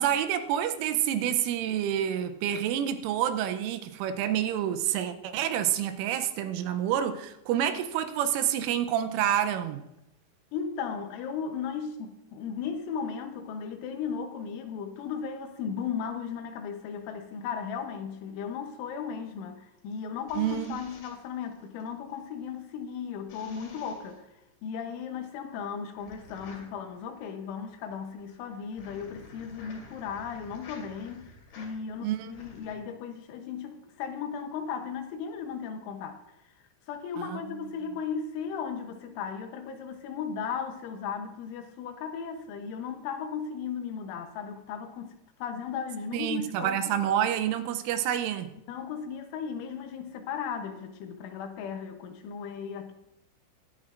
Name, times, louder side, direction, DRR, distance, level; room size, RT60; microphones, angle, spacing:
voice 1, 0.0-9.8 20.4-20.7 32.0-32.3 37.2-37.6 46.1-48.5, right 10 dB, 85° right, 3.2 m, -28 dB
voice 2, 10.5-24.3 24.6-31.3 31.6-36.2 36.9-46.9 48.7-52.9, left 6 dB, 80° left, 3.3 m, -36 dB
sound 1, 19.8-21.9 23.3-24.2 26.0-32.8, left 3 dB, 60° left, 4.2 m, -51 dB
22.0 x 8.8 x 2.5 m
omnidirectional pair, 5.8 m